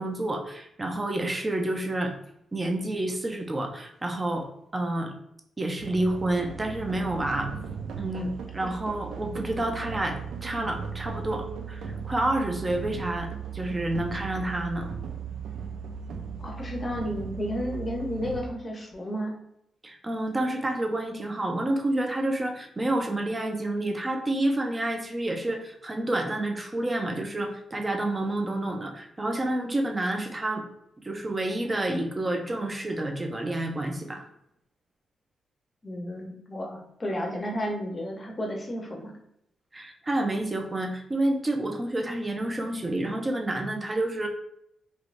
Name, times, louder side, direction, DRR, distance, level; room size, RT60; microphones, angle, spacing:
voice 1, 0.0-2.1 2.5-4.5 4.7-5.1 5.6-7.5 8.0-14.9 19.8-30.6 31.0-34.3 39.7-44.3, right 1 dB, 20° right, 3 dB, 0.5 m, -29 dB
sound 1, 5.8-18.4, right 6 dB, 80° right, 0.4 m, -37 dB
voice 2, 16.4-19.4 35.8-39.1, equal, 25° left, 1 dB, 0.7 m, -32 dB
3.2 x 2.9 x 2.5 m, 0.74 s
cardioid pair, 120°, 0 cm